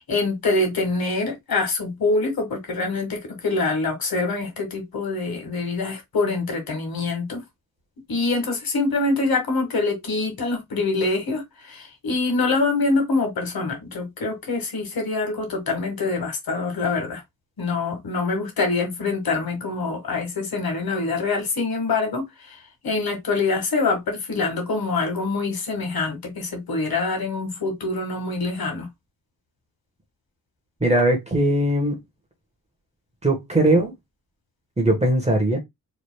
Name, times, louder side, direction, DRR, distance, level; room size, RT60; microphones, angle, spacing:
voice 1, 0.1-7.4 8.1-17.2 17.6-28.9, left 3 dB, 90° left, 1.8 m, -25 dB
voice 2, 30.8-32.0 33.2-33.9 34.8-35.6, right 1 dB, 20° right, 1.2 m, -20 dB
4.9 x 3.3 x 2.2 m
wide cardioid pair, 135°, 35 cm